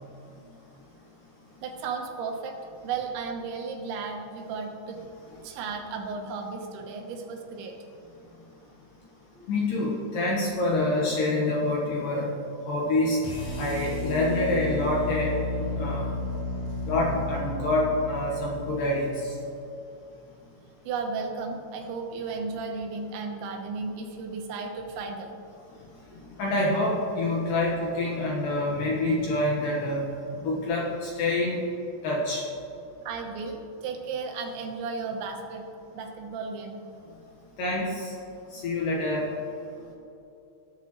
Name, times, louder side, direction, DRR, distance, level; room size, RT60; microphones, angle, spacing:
voice 1, 1.6-2.6 2.8-5.0 5.4-7.8 9.3-9.5 15.7-17.3 20.9-25.4 28.6-29.3 29.5-29.8 30.3-30.4 33.1-35.6 35.9-36.8, right 4 dB, 80° right, 2 dB, 3.3 m, -35 dB
voice 2, 9.5-12.3 12.7-13.2 13.6-15.4 15.7-16.1 16.9-19.4 26.4-30.1 30.4-31.6 32.0-32.5 37.6-38.1 38.5-39.3, left 2 dB, 65° left, -3 dB, 2.4 m, -26 dB
sound 1, 13.2-19.4, left 2 dB, 45° left, 3.5 m, -33 dB
19.5 x 8.4 x 3.1 m, 2.9 s
omnidirectional pair, 5.3 m